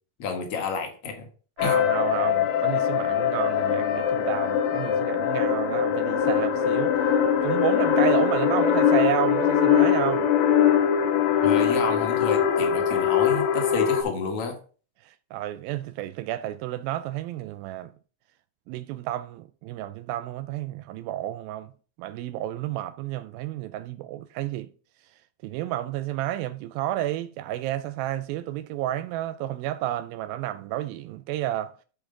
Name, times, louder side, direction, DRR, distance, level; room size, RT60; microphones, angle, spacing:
voice 1, 0.2-1.3 1.6-1.8 11.4-14.6, left 5 dB, 50° left, 2.0 m, -30 dB
sound 1, 1.6-14.0, left 8 dB, 80° left, 2.9 m, -22 dB
voice 2, 1.6-7.0 7.4-10.3 15.0-17.9 18.7-21.7 22.0-24.7 25.4-31.7, right 13 dB, 85° right, 2.3 m, -31 dB
12.5 x 4.6 x 3.8 m
omnidirectional pair, 4.1 m